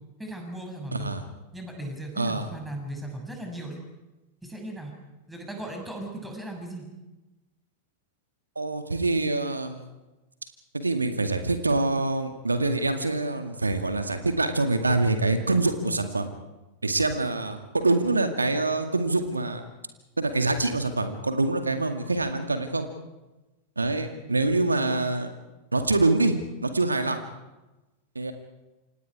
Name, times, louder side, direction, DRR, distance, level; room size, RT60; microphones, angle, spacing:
voice 1, 0.2-1.1 1.5-3.8 4.4-4.9 5.3-6.9, right 1 dB, 5° right, 2 dB, 6.6 m, -37 dB
voice 2, 0.9-1.2 2.2-2.5 8.6-9.9 10.7-16.3 16.8-19.6 20.2-22.9 23.8-25.3 25.7-26.4 26.6-27.2 28.2-28.3, right 2 dB, 80° right, 7 dB, 2.1 m, -25 dB
28.5 x 26.0 x 4.8 m, 1.1 s
figure-of-eight pair, 90°, 0 cm